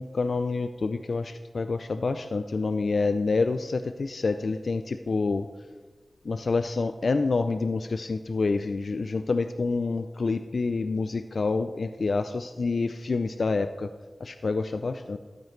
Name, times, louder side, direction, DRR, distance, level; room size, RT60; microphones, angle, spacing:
voice 1, 0.0-5.5 6.2-13.9 14.2-15.2, left 3 dB, 70° left, 9 dB, 0.3 m, -27 dB
13.0 x 9.3 x 3.2 m, 1.4 s
wide cardioid pair, 90°, 0 cm